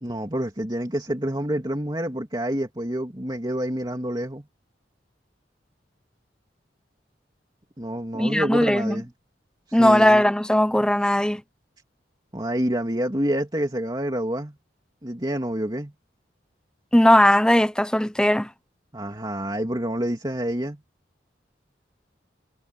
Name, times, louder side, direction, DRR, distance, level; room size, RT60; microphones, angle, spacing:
voice 1, 0.0-4.4 7.8-9.1 9.7-10.2 12.3-14.6 15.0-15.9 18.9-20.8, right 1 dB, 25° right, 2.8 m, -27 dB
voice 2, 8.1-9.0 9.7-11.4 16.9-18.5, left 1 dB, 5° left, 0.6 m, -18 dB
head